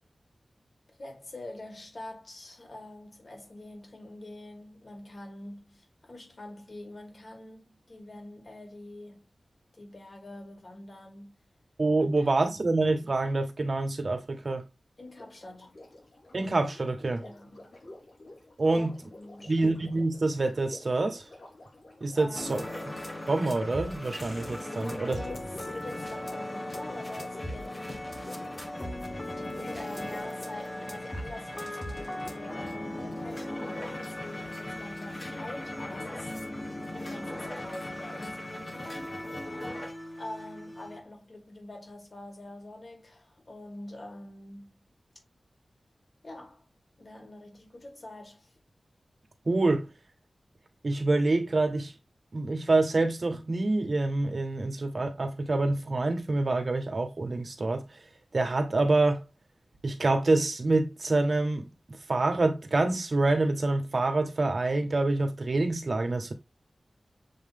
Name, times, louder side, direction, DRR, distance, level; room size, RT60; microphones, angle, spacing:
voice 1, 1.0-9.2 9.7-11.3 12.0-12.5 15.0-15.7 17.2-17.7 18.6-18.9 19.2-19.5 22.1-22.8 24.7-28.1 29.3-36.3 36.9-39.0 40.2-44.8 46.2-46.7 47.0-48.5, left 1 dB, 55° left, 3.2 m, -45 dB
voice 2, 11.8-14.6 16.3-17.2 18.6-18.9 19.5-21.3 22.0-22.6 23.3-25.2 49.4-49.9 50.8-51.9 52.3-57.9 58.3-59.2 59.8-66.3, right 2 dB, 55° right, 1.6 m, -26 dB
Sink (filling or washing), 15.0-32.9 34.0-34.1, left 1 dB, 80° left, 4.5 m, -50 dB
sound 1, 22.3-41.0, left 1 dB, 30° left, 1.5 m, -38 dB
7.7 x 3.3 x 3.8 m
wide cardioid pair, 80°, 0 cm